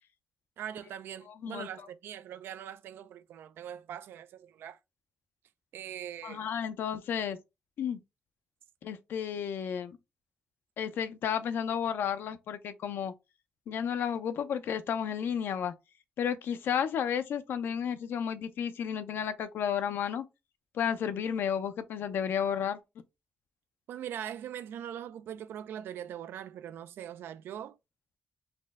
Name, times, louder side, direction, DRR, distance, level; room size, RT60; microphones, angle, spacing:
voice 1, 0.6-4.8 5.7-6.5 23.9-27.8, right 10 dB, 90° right, 0.3 m, -41 dB
voice 2, 6.2-7.4 7.8-8.0 8.8-10.0 10.8-13.1 13.7-15.7 16.2-20.2 20.7-22.8, left 8 dB, 80° left, 0.5 m, -32 dB
4.1 x 2.1 x 3.5 m
cardioid pair, 95°, 4 cm